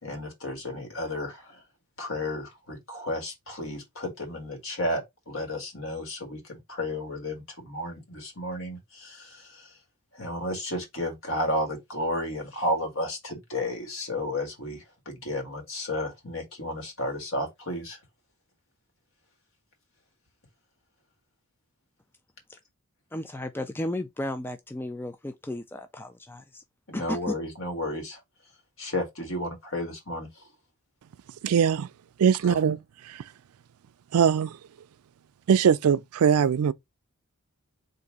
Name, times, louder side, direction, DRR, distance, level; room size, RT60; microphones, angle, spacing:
voice 1, 0.0-1.6 2.0-9.8 10.1-18.0 26.9-28.2 28.8-30.5 32.5-32.6, left 1 dB, 65° left, 1.7 m, -32 dB
voice 2, 23.1-26.6 26.9-27.4, left 1 dB, 10° left, 0.3 m, -34 dB
voice 3, 31.4-31.9 32.2-32.8 33.0-33.2 34.1-34.6 35.5-36.7, right 7 dB, 90° right, 0.4 m, -21 dB
3.9 x 2.6 x 4.7 m
head